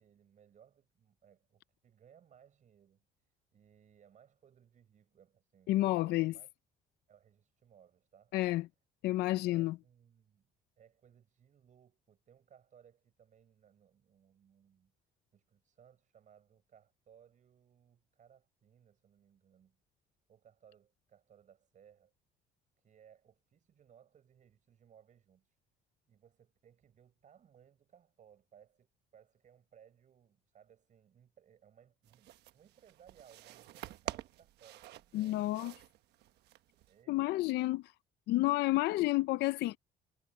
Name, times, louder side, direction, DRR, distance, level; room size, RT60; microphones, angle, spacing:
voice 1, 0.0-3.0 3.5-6.5 7.1-8.4 9.4-10.5 10.8-14.9 15.3-19.8 20.3-22.1 22.8-25.6 26.1-35.4 36.7-37.5, right 8 dB, 50° right, 6.5 m, -63 dB
voice 2, 5.7-6.3 8.3-8.7 9.0-9.8 35.1-35.7 37.1-37.8 38.3-39.8, left 17 dB, 80° left, 0.5 m, -30 dB
sound 1, 32.0-37.0, right 15 dB, 80° right, 1.1 m, -48 dB
cardioid pair, 110°, 17 cm